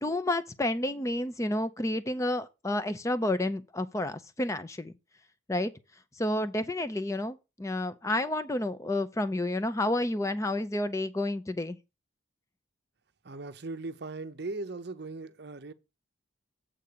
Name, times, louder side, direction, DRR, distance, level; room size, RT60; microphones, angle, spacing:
voice 1, 0.0-4.9 5.5-5.7 6.2-11.8, left 1 dB, 15° left, 0.5 m, -30 dB
voice 2, 13.2-15.7, right 3 dB, 55° right, 0.6 m, -38 dB
8.2 x 3.7 x 6.6 m
head